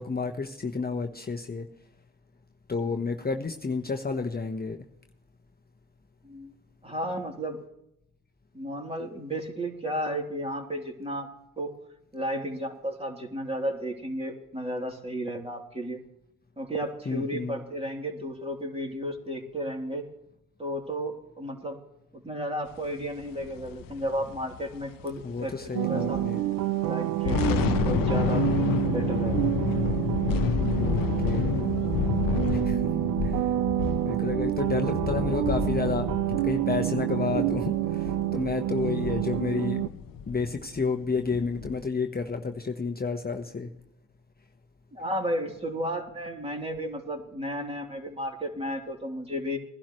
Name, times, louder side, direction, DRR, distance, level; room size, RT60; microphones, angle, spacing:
voice 1, 0.0-1.7 2.7-4.8 17.1-17.6 25.2-26.4 30.8-31.5 32.5-33.5 34.0-39.9 40.3-43.7, left 4 dB, 25° left, 3 dB, 1.1 m, -31 dB
voice 2, 6.8-7.6 8.5-11.7 12.1-16.0 16.6-20.0 20.6-21.8 22.1-26.2 26.7-28.4 28.8-29.5 32.7-32.9 44.9-49.6, equal, 15° right, 1 dB, 3.3 m, -33 dB
sound 1, 23.2-26.0 26.3-26.5 27.0-41.8, left 7 dB, 75° left, 0.8 m, -30 dB
sound 2, 25.7-39.9, right 15 dB, 65° right, 0.5 m, -28 dB
20.0 x 11.5 x 3.2 m, 0.79 s
supercardioid pair, 50°, 34 cm